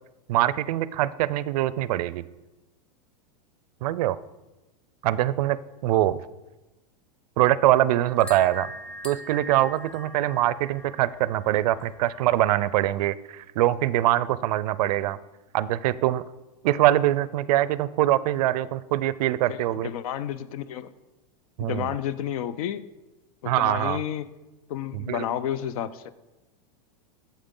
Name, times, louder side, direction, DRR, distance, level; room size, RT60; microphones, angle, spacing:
voice 1, 0.3-2.2 3.8-4.2 5.0-5.6 5.8-6.2 7.4-8.7 9.0-15.2 15.5-16.2 16.6-19.9 21.6-21.9 23.4-24.0 24.9-25.2, right 14 dB, 70° right, 18 dB, 0.4 m, -23 dB
sound 1, 8.0-13.0, equal, 5° left, 0.5 m, -43 dB
voice 2, 19.5-20.9 21.6-22.8 23.4-24.3 24.7-26.1, left 10 dB, 60° left, 15 dB, 0.5 m, -31 dB
8.8 x 7.3 x 3.7 m, 1.1 s
supercardioid pair, 145°, 21 cm